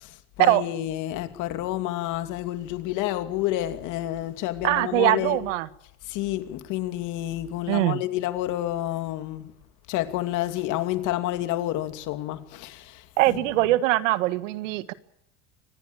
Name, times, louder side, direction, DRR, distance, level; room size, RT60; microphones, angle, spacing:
voice 1, 0.0-5.4 6.0-9.5 9.9-13.5, left 14 dB, 55° left, 2.7 m, -29 dB
voice 2, 4.6-5.7 7.7-8.0 13.2-14.9, right 17 dB, 85° right, 1.6 m, -22 dB
24.5 x 20.0 x 8.8 m
supercardioid pair, 140°, 36 cm